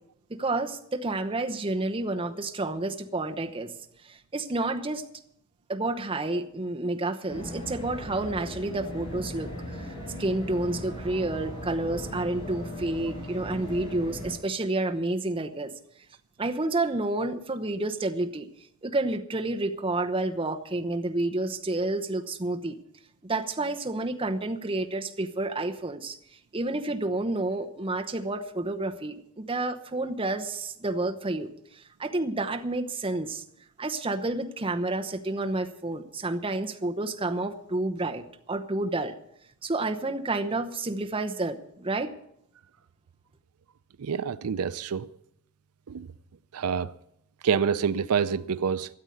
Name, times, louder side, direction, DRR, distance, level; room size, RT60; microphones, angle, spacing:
voice 1, 0.3-3.7 4.1-5.0 5.7-9.9 10.2-15.7 16.4-18.5 18.8-22.8 23.2-26.2 26.5-31.5 31.7-33.4 33.8-39.1 39.6-42.1, right 2 dB, 25° right, 0.9 m, -30 dB
sound 1, 7.3-14.3, equal, 25° left, 5.2 m, -38 dB
voice 2, 44.0-45.1 45.9-46.1 46.5-46.9 47.4-48.9, right 6 dB, 80° right, 0.5 m, -27 dB
13.0 x 8.1 x 9.4 m
head